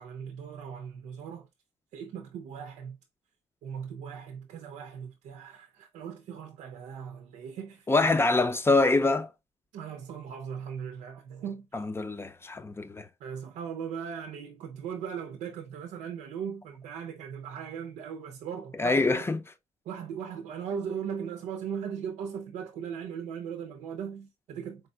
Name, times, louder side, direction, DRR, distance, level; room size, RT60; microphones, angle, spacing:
voice 1, 0.0-1.5 1.9-3.0 3.6-7.9 9.7-11.7 13.2-19.3 19.9-24.9, right 7 dB, 90° right, 0.6 m, -38 dB
voice 2, 7.9-9.3 11.7-13.1 18.8-19.4, left 3 dB, 20° left, 0.5 m, -25 dB
4.3 x 3.3 x 2.3 m
cardioid pair, 80°, 12 cm